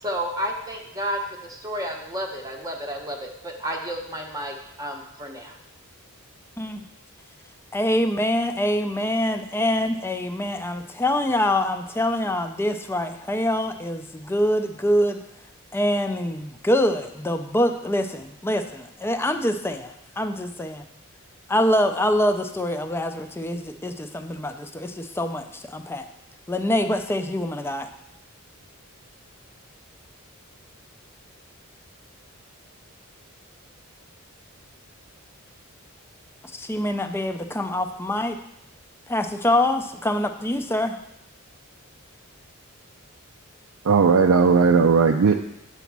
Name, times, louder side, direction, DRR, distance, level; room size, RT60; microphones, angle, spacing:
voice 1, 0.0-5.6, equal, 15° right, 1 dB, 0.8 m, -31 dB
voice 2, 7.7-15.2 15.7-20.8 21.5-26.1 26.5-27.9 36.5-38.4 39.1-41.0, left 1 dB, 10° left, 7 dB, 0.5 m, -25 dB
voice 3, 43.9-45.4, right 5 dB, 75° right, 4 dB, 0.5 m, -17 dB
8.1 x 4.1 x 6.0 m, 0.80 s
head